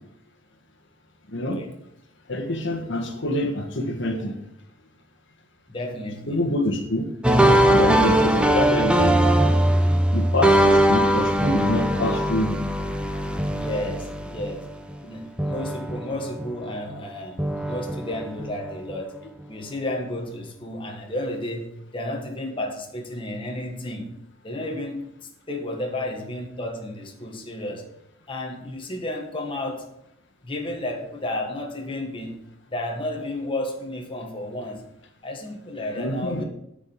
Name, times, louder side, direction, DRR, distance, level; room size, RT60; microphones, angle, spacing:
voice 1, 2.3-4.3 6.3-7.1 7.7-9.2 10.1-12.6 36.0-36.4, left 1 dB, 65° left, 4 dB, 1.6 m, -25 dB
voice 2, 5.7-6.4 13.5-14.7 15.0-17.4 17.7-19.2 19.5-24.1 24.4-27.8 28.3-29.9 30.4-32.4 32.7-34.8 35.2-36.4, left 1 dB, 30° left, 1 dB, 1.5 m, -32 dB
sound 1, 7.2-15.1 15.4-16.9 17.4-19.0, right 1 dB, 5° right, 0.7 m, -21 dB
9.6 x 5.2 x 8.0 m, 0.79 s
head